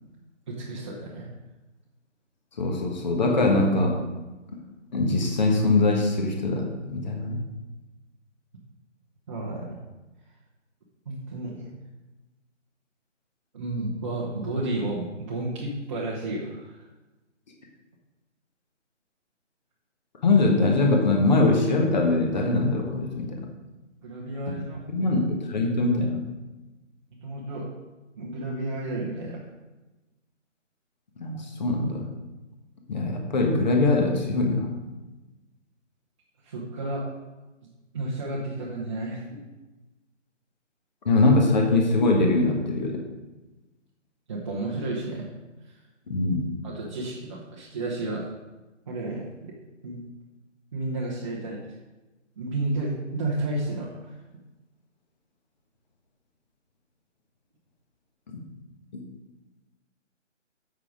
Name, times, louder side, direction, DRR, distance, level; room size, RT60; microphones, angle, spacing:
voice 1, 0.5-1.3 9.3-9.8 11.1-11.7 13.5-16.8 24.0-25.1 27.2-27.7 28.1-29.5 36.4-37.1 37.9-39.4 44.3-45.3 46.6-48.3 48.9-49.5 49.8-50.0 50.7-51.6 52.4-54.1, right 2 dB, 25° right, -6 dB, 0.9 m, -32 dB
voice 2, 2.6-4.0 4.9-7.4 20.2-23.4 24.5-24.6 24.9-26.3 31.2-32.1 32.9-34.7 41.0-43.0 46.1-46.5, left 2 dB, 35° left, 1 dB, 1.4 m, -22 dB
8.1 x 5.8 x 5.0 m, 1.1 s
figure-of-eight pair, 145°, 38 cm